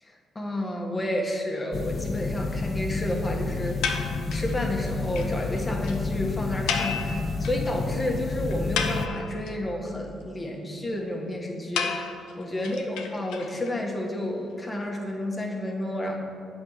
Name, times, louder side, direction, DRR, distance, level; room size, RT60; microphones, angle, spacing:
voice 1, 0.0-3.8 4.3-16.2, left 1 dB, 20° left, 0 dB, 1.3 m, -31 dB
sound 1, 1.7-9.1, left 4 dB, 40° left, 0.4 m, -30 dB
sound 2, 3.8-4.5 4.9-5.0 5.2-5.3 5.6-5.7 5.8-6.0 6.7-7.7 8.0-8.1 8.5-9.5 11.8-13.7, left 6 dB, 85° left, 0.6 m, -31 dB
8.6 x 4.2 x 6.3 m, 2.5 s
cardioid pair, 90°, 0 cm